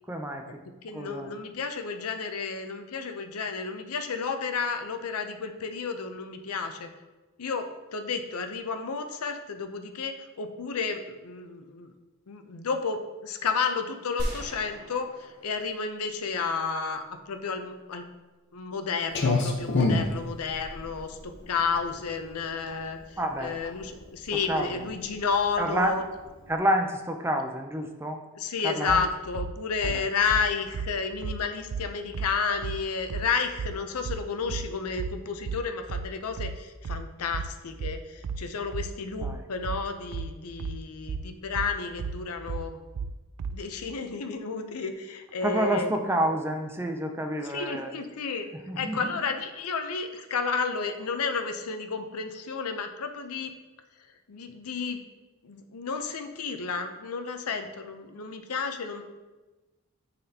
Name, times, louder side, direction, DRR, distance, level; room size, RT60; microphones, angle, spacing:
voice 1, 0.1-0.4 0.9-1.3 23.2-23.6 24.5-24.8 25.6-26.0 26.5-28.2 28.6-29.0 29.8-30.1 39.2-39.4 45.4-47.9 48.7-49.2, right 1 dB, 10° right, 4 dB, 0.4 m, -28 dB
voice 2, 0.8-6.9 7.4-11.9 12.3-18.1 18.5-21.2 21.5-23.0 23.4-26.0 28.3-42.8 43.5-45.9 47.5-48.5 48.8-53.5 54.3-55.0 55.4-59.0, left 5 dB, 85° left, 7 dB, 0.6 m, -31 dB
sound 1, 14.2-16.5, equal, 45° right, 1.6 m, -37 dB
Clock, 19.1-26.5, left 3 dB, 50° left, 0.8 m, -31 dB
sound 2, 28.9-43.7, right 5 dB, 85° right, 0.3 m, -34 dB
9.7 x 4.1 x 2.8 m, 1.2 s
head